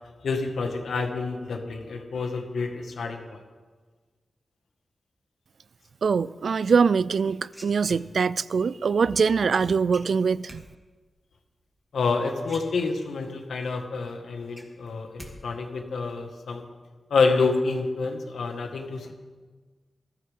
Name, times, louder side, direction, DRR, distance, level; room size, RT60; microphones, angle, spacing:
voice 1, 0.2-3.4 11.9-16.6 17.1-19.1, left 4 dB, 85° left, 2.0 m, -28 dB
voice 2, 6.0-10.6, right 5 dB, 65° right, 0.3 m, -23 dB
sound 1, 7.1-8.5 9.9-10.6 12.0-12.1 12.4-13.3 13.7-13.8 14.1-15.3 15.6-16.1, equal, 5° right, 2.2 m, -46 dB
20.5 x 14.0 x 3.8 m
wide cardioid pair, 110°, 0 cm